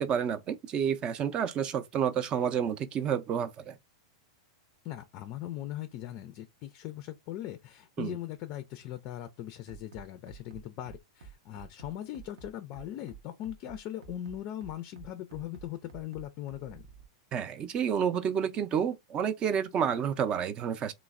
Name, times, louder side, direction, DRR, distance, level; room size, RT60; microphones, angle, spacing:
voice 1, 0.0-3.8 8.0-8.1 17.3-20.9, right 8 dB, 30° right, 0.4 m, -30 dB
voice 2, 4.8-16.8, left 13 dB, 45° left, 0.4 m, -40 dB
Bass drum, 9.7-17.1, right 6 dB, 75° right, 0.6 m, -50 dB
3.1 x 2.0 x 2.4 m
hypercardioid pair, 120°, 3 cm